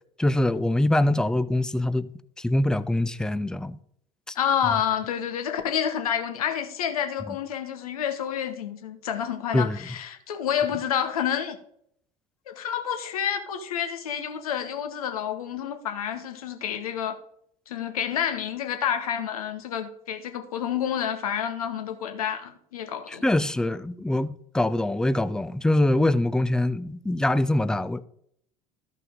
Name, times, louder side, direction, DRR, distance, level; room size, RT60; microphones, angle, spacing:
voice 1, 0.2-2.1 2.4-3.8 4.3-4.4 9.5-9.8 23.1-28.1, left 1 dB, 5° left, 0.4 m, -24 dB
voice 2, 4.3-11.6 12.5-17.2 17.7-23.2, left 9 dB, 70° left, 1.1 m, -29 dB
13.5 x 5.7 x 3.7 m
figure-of-eight pair, 65°, 19 cm